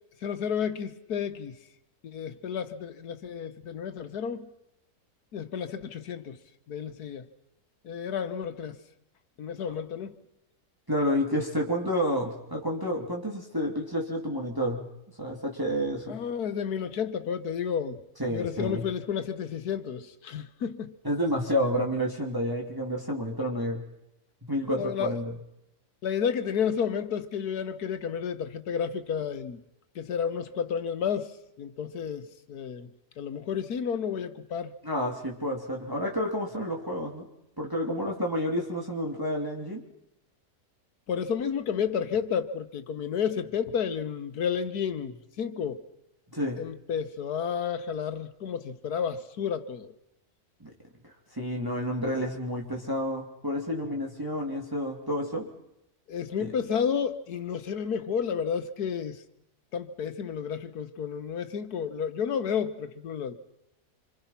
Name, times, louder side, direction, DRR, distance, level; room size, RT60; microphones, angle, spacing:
voice 1, 0.2-1.6 2.0-4.5 5.3-6.4 6.7-7.3 7.8-8.8 9.4-10.2 16.1-18.0 18.3-21.0 24.8-25.1 26.0-29.6 30.0-32.9 33.2-34.7 41.1-45.8 46.6-49.9 56.1-59.2 59.7-63.3, left 7 dB, 85° left, 1.7 m, -31 dB
voice 2, 10.9-14.9 15.2-16.2 18.2-18.8 21.0-23.8 24.4-25.3 34.8-37.3 37.6-39.8 46.3-46.6 50.6-50.7 51.3-55.5 56.4-56.5, equal, 15° right, 3.0 m, -30 dB
27.0 x 26.5 x 5.8 m
omnidirectional pair, 1.6 m